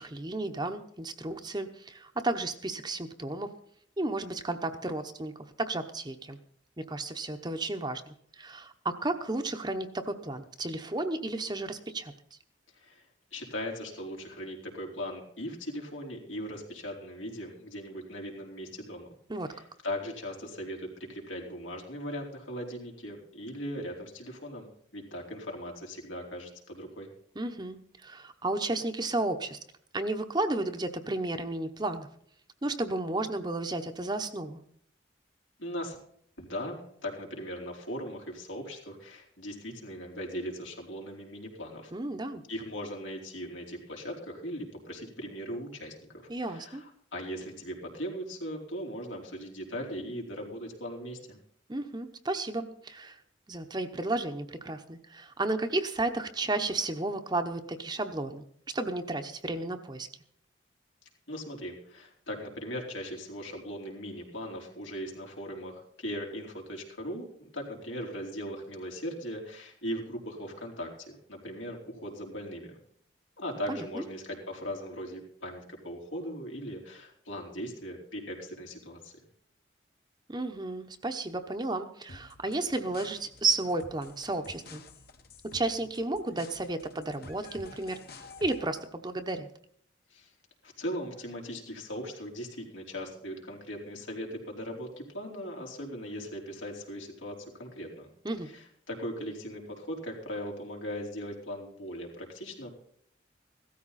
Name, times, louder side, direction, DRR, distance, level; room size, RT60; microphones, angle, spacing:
voice 1, 0.0-3.5 4.0-6.4 6.8-12.1 19.3-19.5 27.4-29.6 29.9-32.1 32.6-34.6 41.9-42.4 46.3-46.8 51.7-53.2 53.5-58.4 58.7-60.1 73.7-74.0 80.3-84.8 85.5-89.5 98.2-98.5, right 2 dB, 25° right, 6 dB, 0.9 m, -33 dB
voice 2, 13.3-19.1 19.5-24.7 24.9-27.1 35.6-36.0 36.4-41.9 42.5-51.4 61.3-72.8 73.4-79.1 90.1-90.3 90.6-98.1 98.4-102.7, equal, 90° left, 0 dB, 4.3 m, -39 dB
sound 1, 82.1-88.9, left 3 dB, 50° left, 1.2 m, -51 dB
16.5 x 13.5 x 4.2 m, 0.65 s
head